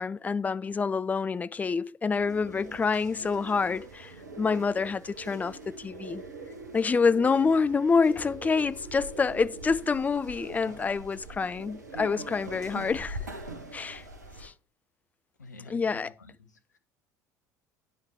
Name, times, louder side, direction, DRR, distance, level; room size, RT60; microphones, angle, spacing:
voice 1, 0.0-6.2 6.7-13.2 13.7-14.0 14.4-14.5 15.7-16.1, left 5 dB, 15° left, 0.3 m, -27 dB
sound 1, 2.1-14.5, right 2 dB, 75° right, 1.3 m, -43 dB
voice 2, 15.4-16.8, left 2 dB, 80° left, 1.1 m, -50 dB
9.2 x 5.1 x 4.2 m
figure-of-eight pair, 65°, 9 cm